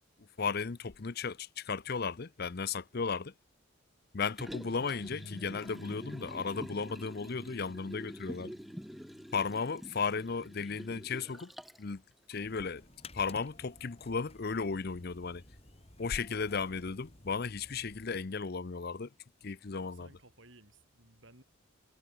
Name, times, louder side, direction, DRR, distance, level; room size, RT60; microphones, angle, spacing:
voice 1, 0.4-3.3 4.1-8.5 9.3-11.5 11.8-12.0 12.3-12.8 13.1-15.4 16.0-19.1 19.4-20.1, left 5 dB, 45° left, 0.6 m, -35 dB
Liquid, 4.2-11.9 12.3-12.4, equal, ahead, 2.1 m, -47 dB
Bass guitar, 5.1-11.3, left 1 dB, 75° left, 2.4 m, -54 dB
sound 1, 12.3-18.2, left 2 dB, 30° left, 4.4 m, -54 dB
voice 2, 19.7-21.4, right 2 dB, 60° right, 7.0 m, -58 dB
head